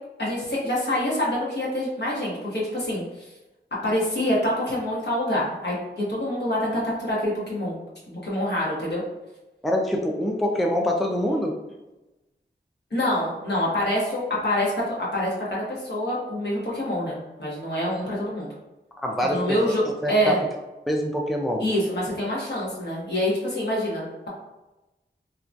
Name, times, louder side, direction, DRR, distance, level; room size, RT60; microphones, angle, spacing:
voice 1, 0.2-3.0 3.8-7.8 8.1-9.0 12.9-15.6 15.9-18.5 19.3-19.8 20.1-20.4 21.6-24.3, left 1 dB, 65° left, -6 dB, 1.1 m, -26 dB
voice 2, 9.6-11.5 19.0-19.7 20.0-20.3 20.9-21.6, equal, ahead, 1 dB, 0.3 m, -25 dB
2.8 x 2.2 x 2.6 m, 1.0 s
wide cardioid pair, 55°, 19 cm